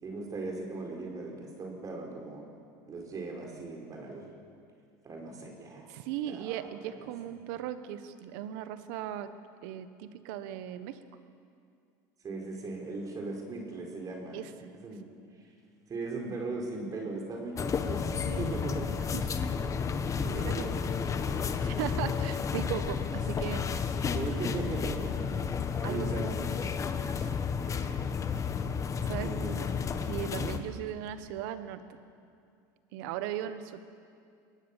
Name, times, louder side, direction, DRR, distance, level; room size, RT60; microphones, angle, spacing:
voice 1, 0.0-2.4 2.9-4.3 5.0-5.9 6.3-7.1 12.2-14.4 14.7-15.1 15.9-19.0 20.4-21.2 24.1-26.7 29.2-29.8 30.2-30.5, right 3 dB, 35° right, 1 dB, 4.9 m, -39 dB
voice 2, 5.9-9.3 9.6-11.0 14.3-14.7 18.2-18.5 19.1-19.3 20.1-20.7 21.6-23.6 25.8-26.1 27.1-27.3 27.8-28.0 29.0-29.3 30.0-31.8 32.9-33.9, right 11 dB, 75° right, 11 dB, 1.4 m, -38 dB
sound 1, 17.6-30.6, left 6 dB, 30° left, 1.4 m, -32 dB
23.5 x 18.0 x 7.4 m, 2.4 s
supercardioid pair, 100°, 10 cm